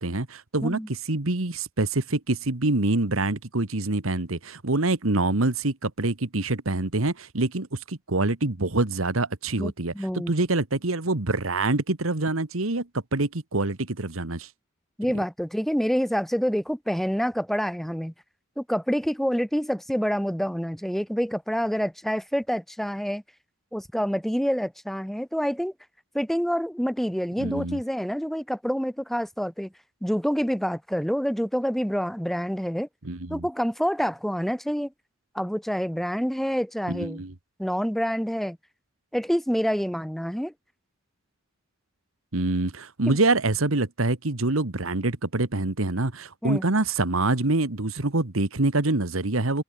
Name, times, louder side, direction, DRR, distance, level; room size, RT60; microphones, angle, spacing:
voice 1, 0.0-9.9 10.3-14.5 27.4-27.8 33.0-33.5 36.9-37.3 42.3-49.6, right 2 dB, 85° right, 1.7 m, -25 dB
voice 2, 9.6-10.3 15.0-18.1 18.6-23.2 23.7-25.7 26.1-29.7 30.0-32.9 33.3-34.9 35.3-37.2 37.6-38.6 39.1-40.5 43.1-43.2 46.4-46.6, equal, ahead, 1.0 m, -27 dB
head